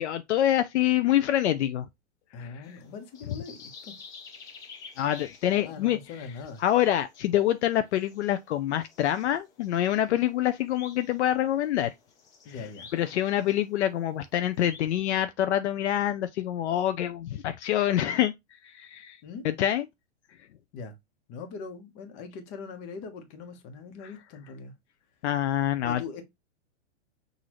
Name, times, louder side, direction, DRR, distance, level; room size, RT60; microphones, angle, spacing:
voice 1, 0.0-1.9 2.4-2.6 5.0-6.0 6.6-11.9 12.6-12.7 12.9-18.3 18.6-19.2 19.4-19.8 25.2-26.0, left 12 dB, 70° left, 0.6 m, -26 dB
voice 2, 2.3-4.0 5.6-6.6 12.4-12.9 19.2-19.5 20.7-20.9 21.3-24.7 25.8-26.2, left 5 dB, 30° left, 1.2 m, -41 dB
sound 1, 2.6-14.8, left 5 dB, 10° left, 0.4 m, -51 dB
6.2 x 2.7 x 3.0 m
hypercardioid pair, 150°, 35 cm